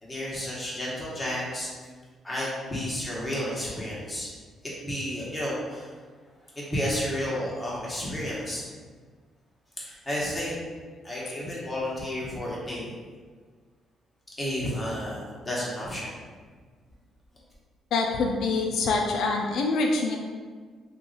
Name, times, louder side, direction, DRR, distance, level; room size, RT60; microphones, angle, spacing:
voice 1, 0.0-1.7 2.2-4.3 4.8-5.9 6.5-8.6 9.8-10.6 11.0-12.9 14.4-16.1, equal, 15° left, -6 dB, 1.2 m, -31 dB
voice 2, 17.9-20.2, left 3 dB, 75° left, 1 dB, 0.3 m, -25 dB
2.9 x 2.4 x 3.8 m, 1.5 s
cardioid pair, 90°, 0 cm